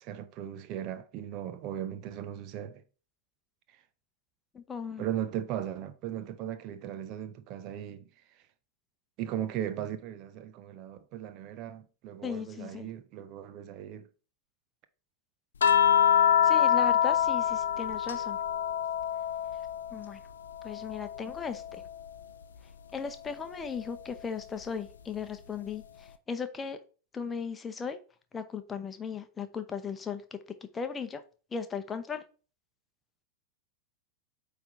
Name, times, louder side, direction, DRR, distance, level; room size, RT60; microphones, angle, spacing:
voice 1, 0.0-2.8 3.7-3.8 5.0-8.1 9.2-14.1, right 11 dB, 40° right, 0.6 m, -37 dB
voice 2, 4.5-5.1 12.2-12.9 16.4-18.4 19.9-20.2 20.6-21.8 22.9-26.8 27.1-28.0 28.3-30.4 30.7-31.2 31.5-32.2, left 6 dB, 20° left, 0.8 m, -37 dB
sound 1, 15.6-20.1 20.4-22.1 23.6-23.8, left 9 dB, 70° left, 0.5 m, -26 dB
9.0 x 3.4 x 3.9 m
figure-of-eight pair, 90°, 0 cm